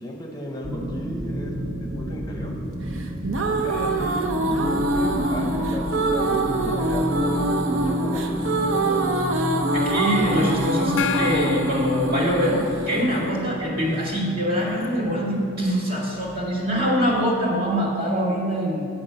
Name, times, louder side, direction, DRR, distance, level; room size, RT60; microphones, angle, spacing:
voice 1, 0.0-1.5 1.8-2.5 3.4-4.3 4.6-9.0, equal, 20° left, 1 dB, 0.7 m, -35 dB
sound 1, 0.6-17.7, right 1 dB, 30° right, 1.0 m, -32 dB
sound 2, 3.0-14.0, right 1 dB, 80° right, 0.7 m, -25 dB
voice 2, 9.7-18.9, equal, 50° right, -3 dB, 2.1 m, -24 dB
Gong, 11.0-13.0, left 9 dB, 70° left, 0.3 m, -32 dB
8.3 x 6.0 x 6.8 m, 2.5 s
head